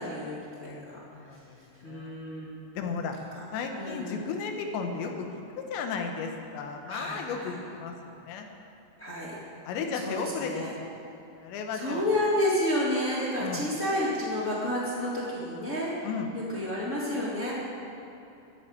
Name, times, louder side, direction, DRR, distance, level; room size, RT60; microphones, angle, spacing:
voice 1, 0.0-0.7 1.8-2.8 3.3-3.4 3.7-4.1 6.9-7.6 9.0-9.3 9.9-10.7 11.7-15.9 16.3-17.5, left 1 dB, 25° left, -6 dB, 1.7 m, -30 dB
voice 2, 0.6-2.2 2.8-3.2 3.5-5.3 5.6-7.9 8.2-8.5 9.6-10.9 11.4-12.0 13.4-13.6 16.0-16.3, left 5 dB, 75° left, 3 dB, 3.5 m, -34 dB
13.0 x 11.0 x 8.9 m, 2.9 s
omnidirectional pair, 5.3 m